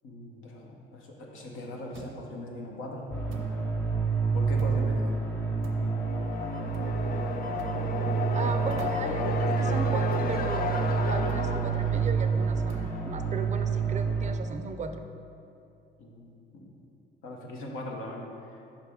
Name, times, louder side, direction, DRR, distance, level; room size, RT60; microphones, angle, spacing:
voice 1, 0.0-3.5 4.3-5.1 16.0-16.7 17.2-18.8, left 1 dB, 85° left, 0 dB, 0.9 m, -40 dB
sound 1, 1.9-2.3 3.3-3.6 4.6-4.9 5.6-5.9 6.7-7.0 7.6-7.8 8.7-9.2 10.1-10.4 11.3-11.5 12.7-13.0, right 5 dB, 90° right, 0.6 m, -45 dB
sound 2, 3.1-14.3, right 5 dB, 10° left, 0.7 m, -28 dB
sound 3, 5.4-13.2, left 4 dB, 45° left, 0.4 m, -34 dB
voice 2, 8.3-15.0, right 4 dB, 35° right, 7 dB, 0.4 m, -37 dB
5.6 x 4.9 x 3.5 m, 2.7 s
cardioid pair, 90°, 20 cm